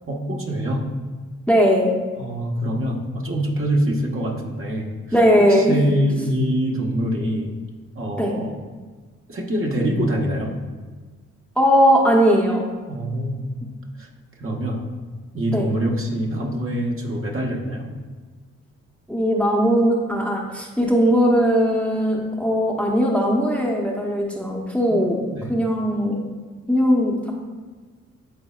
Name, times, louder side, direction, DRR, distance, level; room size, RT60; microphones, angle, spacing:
voice 1, 0.1-0.8 2.2-4.9 5.5-7.5 7.9-8.5 9.3-10.5 12.9-13.4 14.0-14.1 14.4-14.8 15.3-17.9 24.9-25.5, right 1 dB, 40° right, -1 dB, 1.4 m, -24 dB
voice 2, 1.5-1.9 5.1-5.8 8.2-8.3 11.6-12.6 15.5-15.7 19.1-26.2 26.7-27.3, equal, 5° left, -1 dB, 1.1 m, -19 dB
11.0 x 4.0 x 2.5 m, 1.4 s
hypercardioid pair, 45°, 34 cm